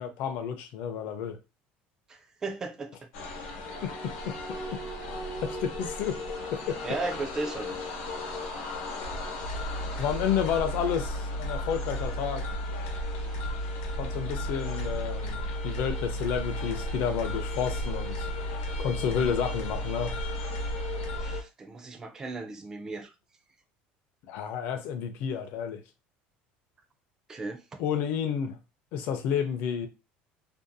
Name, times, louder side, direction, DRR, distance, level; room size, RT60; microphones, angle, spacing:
voice 1, 0.0-1.4 3.8-4.4 4.7-4.8 5.4-6.2 6.5-6.8 10.0-12.4 14.0-18.3 18.8-20.2 24.2-25.8 27.8-28.6 28.9-29.9, left 8 dB, 50° left, 0.5 m, -31 dB
voice 2, 2.1-3.0 6.8-7.7 21.1-23.1 27.3-27.8, right 3 dB, 15° right, 0.3 m, -36 dB
sound 1, 3.1-21.4, left 1 dB, 90° left, 0.9 m, -34 dB
2.6 x 2.2 x 2.5 m
cardioid pair, 175°, 4 cm